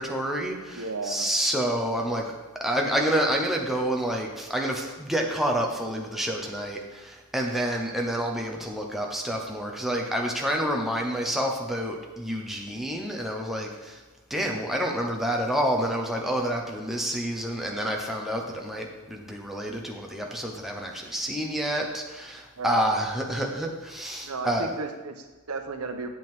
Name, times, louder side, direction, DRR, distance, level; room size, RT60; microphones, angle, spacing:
voice 1, 0.0-2.3 2.6-14.0 14.3-24.7, right 1 dB, ahead, 0 dB, 0.9 m, -28 dB
voice 2, 0.7-1.3 22.6-22.9 24.2-26.1, right 3 dB, 85° right, 6 dB, 0.9 m, -34 dB
8.2 x 7.9 x 3.6 m, 1.2 s
head